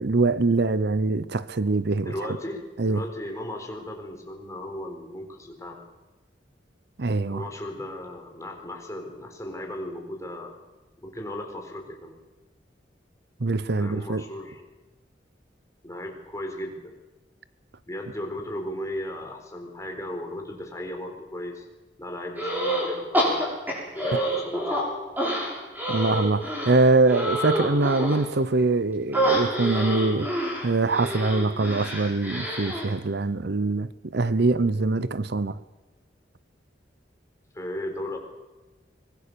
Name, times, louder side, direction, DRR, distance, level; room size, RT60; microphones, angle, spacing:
voice 1, 0.0-2.1 2.8-3.0 7.0-7.4 13.4-14.2 24.1-24.2 25.9-30.3 30.6-35.6, right 3 dB, 65° right, 0.8 m, -23 dB
voice 2, 2.0-5.8 7.3-10.5 11.0-12.2 13.8-14.7 15.8-16.9 17.9-21.7 22.0-23.5 23.9-24.9 37.5-38.2, left 1 dB, 20° left, 4.2 m, -36 dB
sound 1, 22.4-22.9 23.1-24.8 25.2-28.2 29.1-32.9, right 1 dB, 10° right, 7.1 m, -27 dB
24.5 x 22.0 x 6.9 m
head